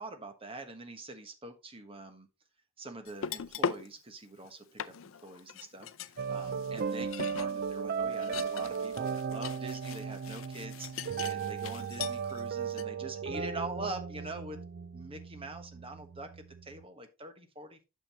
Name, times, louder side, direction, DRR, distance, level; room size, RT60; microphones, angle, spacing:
voice 1, 0.0-2.3 2.8-4.9 5.2-14.6 14.9-17.8, right 2 dB, 25° right, 7 dB, 1.3 m, -44 dB
sound 1, 3.1-3.9 4.4-4.5 4.8-12.4 12.7-12.8, left 7 dB, 65° left, 0.5 m, -40 dB
sound 2, 6.2-16.8, right 6 dB, 50° right, 0.4 m, -36 dB
8.8 x 6.9 x 3.0 m, 0.27 s
head